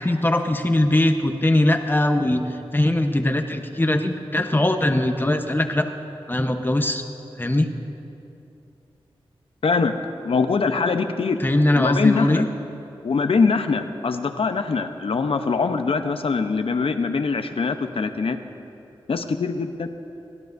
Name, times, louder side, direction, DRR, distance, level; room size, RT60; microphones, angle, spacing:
voice 1, 0.0-2.4 2.7-5.8 6.3-7.0 7.4-7.7 11.4-12.5, left 1 dB, 20° left, 5 dB, 1.0 m, -21 dB
voice 2, 9.6-9.9 10.2-11.4 11.7-12.4 13.0-18.4 19.1-19.9, left 4 dB, 70° left, 8 dB, 0.8 m, -23 dB
28.5 x 12.0 x 2.7 m, 2.8 s
cardioid pair, 50°, 10 cm